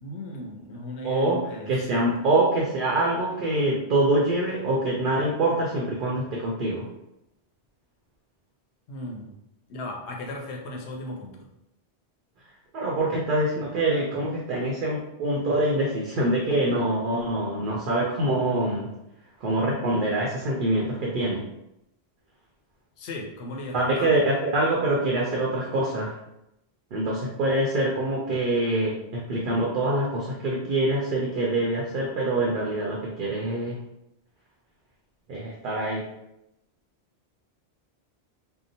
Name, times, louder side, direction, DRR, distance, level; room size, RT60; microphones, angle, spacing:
voice 1, 0.0-2.3 8.9-9.3 9.7-11.5 23.0-24.2, left 1 dB, 85° left, 0 dB, 0.9 m, -36 dB
voice 2, 1.0-1.4 1.7-6.9 12.7-18.9 19.4-21.4 23.7-26.2 26.9-33.8 35.3-36.0, right 1 dB, 60° right, -3 dB, 0.6 m, -25 dB
2.7 x 2.0 x 2.6 m, 0.86 s
omnidirectional pair, 1.1 m